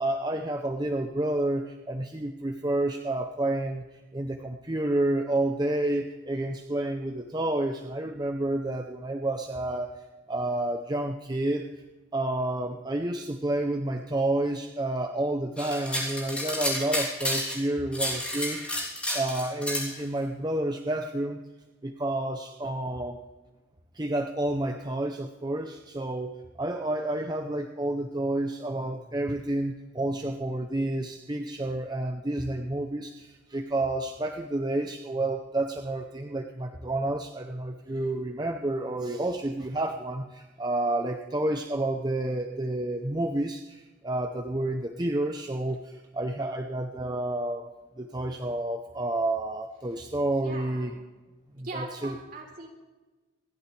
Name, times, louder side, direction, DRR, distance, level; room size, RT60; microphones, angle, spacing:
voice 1, 0.0-11.7 12.1-18.6 19.1-21.4 21.8-23.2 23.9-47.7 48.0-50.9 51.5-52.2, right 1 dB, 20° right, 4 dB, 0.7 m, -30 dB
sound 1, 15.6-17.6 17.9-19.9, left 1 dB, 5° left, 3.2 m, -31 dB
voice 2, 50.2-50.9 51.6-52.7, right 2 dB, 50° right, 0 dB, 3.6 m, -40 dB
28.0 x 11.0 x 3.4 m, 1.2 s
head